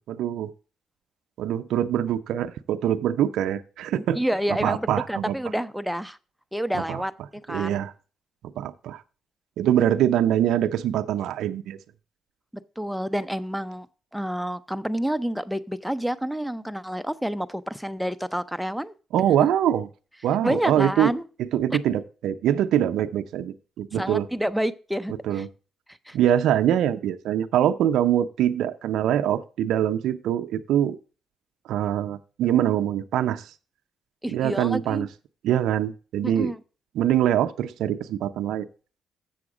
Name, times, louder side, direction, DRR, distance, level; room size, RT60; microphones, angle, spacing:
voice 1, 0.1-0.5 1.4-4.2 4.6-5.3 6.9-7.0 7.5-7.9 8.6-9.0 9.6-11.8 19.1-19.9 20.2-21.1 21.5-24.3 25.2-25.5 26.1-31.0 31.7-33.5 34.3-35.1 35.4-36.5 37.0-38.7, right 11 dB, 80° right, 0.5 m, -23 dB
voice 2, 3.9-6.2 6.5-7.8 12.8-13.9 14.1-18.9 20.4-21.2 23.9-25.5 25.9-26.2 34.2-35.1 36.2-36.6, equal, ahead, 0.5 m, -29 dB
7.7 x 7.1 x 4.8 m
cardioid pair, 85°, 0 cm